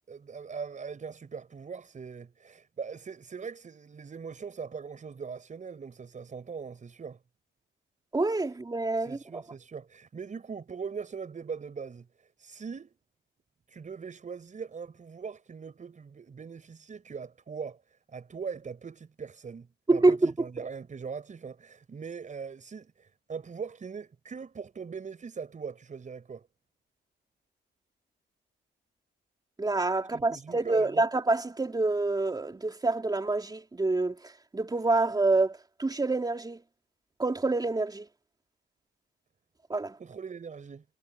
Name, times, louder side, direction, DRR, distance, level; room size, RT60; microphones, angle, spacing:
voice 1, 0.1-7.2 9.0-12.9 13.7-17.8 18.1-26.5 30.1-31.0 40.0-40.8, right 5 dB, 40° right, 5.7 m, -41 dB
voice 2, 8.1-9.4 19.9-20.3 29.6-36.6 37.2-38.1 39.7-40.0, right 2 dB, 20° right, 3.8 m, -27 dB
cardioid pair, 90°, 20 cm